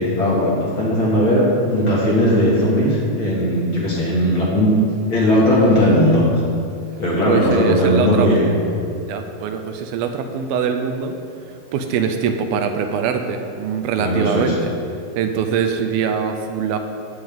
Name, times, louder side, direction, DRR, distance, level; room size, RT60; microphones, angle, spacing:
voice 1, 0.0-4.7 5.0-6.2 7.0-8.6 14.0-14.6, equal, 40° left, -6 dB, 2.0 m, -17 dB
voice 2, 7.2-8.4 9.1-11.2 11.7-14.7 15.2-16.8, right 7 dB, 80° right, 6 dB, 2.3 m, -22 dB
13.5 x 9.7 x 3.6 m, 2.4 s
omnidirectional pair, 4.6 m